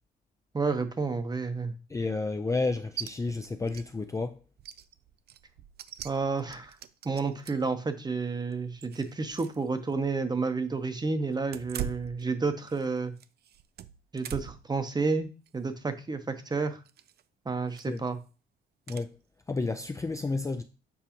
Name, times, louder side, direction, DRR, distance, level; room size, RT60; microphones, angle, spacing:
voice 1, 0.5-1.7 6.0-6.8 7.0-13.1 14.1-16.8 17.5-18.2, right 4 dB, 20° right, 0.8 m, -30 dB
voice 2, 1.9-4.4 17.9-18.0 18.9-19.1 19.5-20.6, left 3 dB, 15° left, 0.4 m, -31 dB
sound 1, 3.0-3.1 3.4-3.9 4.2-4.3 4.6-7.7 8.3-9.6 9.9-10.0 11.4-12.9 13.2-14.7 15.2-15.5 16.9-17.2 17.7-18.1 18.9-19.1, right 10 dB, 55° right, 0.4 m, -42 dB
7.0 x 4.7 x 2.9 m
cardioid pair, 90°, 20 cm